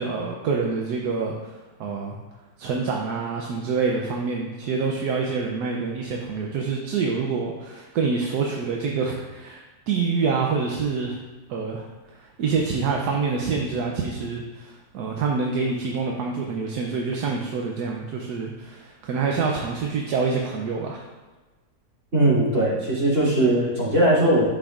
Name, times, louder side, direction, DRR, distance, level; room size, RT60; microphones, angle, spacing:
voice 1, 0.0-2.2 2.6-11.2 11.5-11.9 12.1-21.0, right 5 dB, 80° right, 0 dB, 1.3 m, -26 dB
voice 2, 22.1-24.5, right 1 dB, 50° right, -8 dB, 3.2 m, -19 dB
11.5 x 6.2 x 2.4 m, 1.2 s
omnidirectional pair, 1.7 m